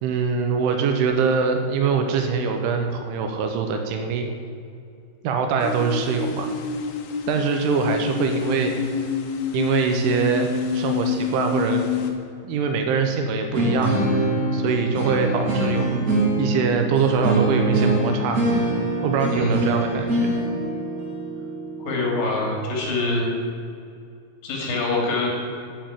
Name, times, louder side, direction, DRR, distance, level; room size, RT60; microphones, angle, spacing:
voice 1, 0.0-4.3 5.2-6.5 7.3-8.8 9.5-11.8 12.4-13.9 14.5-16.0 16.4-18.4 19.0-20.3, right 5 dB, 75° right, 5 dB, 3.2 m, -23 dB
sound 1, 5.6-12.1, left 6 dB, 90° left, 3.6 m, -27 dB
sound 2, 13.5-22.5, right 1 dB, 40° right, 1.3 m, -23 dB
voice 2, 21.8-23.2 24.4-25.3, left 3 dB, 65° left, -2 dB, 4.7 m, -24 dB
9.3 x 7.7 x 8.9 m, 2.4 s
omnidirectional pair, 5.8 m